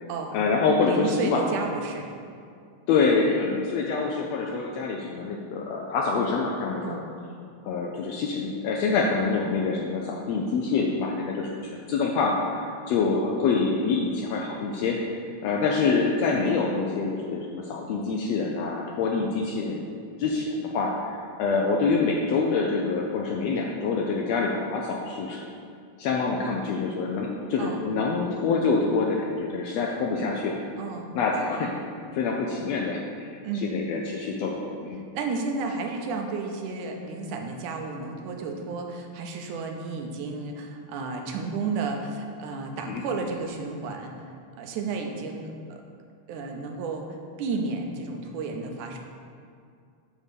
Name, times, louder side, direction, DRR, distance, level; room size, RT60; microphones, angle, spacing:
voice 1, 0.3-1.4 2.9-7.0 7.6-25.4 26.0-30.5 31.1-31.7 32.1-35.0 42.9-43.0, left 4 dB, 80° left, 0 dB, 1.5 m, -26 dB
voice 2, 0.8-2.1 6.8-7.1 27.6-27.8 30.8-31.1 33.4-33.8 35.1-44.1 44.6-45.8 46.3-49.0, right 4 dB, 80° right, 3 dB, 2.2 m, -32 dB
8.1 x 3.6 x 6.7 m, 2.3 s
omnidirectional pair, 3.5 m